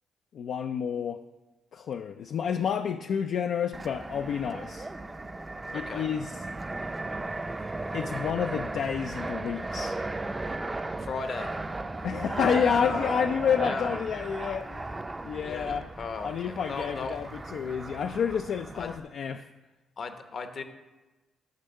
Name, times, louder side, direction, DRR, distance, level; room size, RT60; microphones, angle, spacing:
voice 1, 0.3-1.2 1.7-4.9 5.7-6.4 7.9-10.0 12.0-14.9 15.2-15.9 16.2-19.5, left 7 dB, 65° left, 8 dB, 0.3 m, -29 dB
Fixed-wing aircraft airplane, 3.7-19.0, right 2 dB, 20° right, 0.5 m, -36 dB
voice 2, 11.0-11.5 12.4-13.2 13.6-14.6 15.4-17.2 18.7-18.9 20.0-20.6, left 4 dB, 50° left, 8 dB, 0.9 m, -36 dB
6.6 x 6.2 x 6.8 m, 1.2 s
cardioid pair, 90°, 0 cm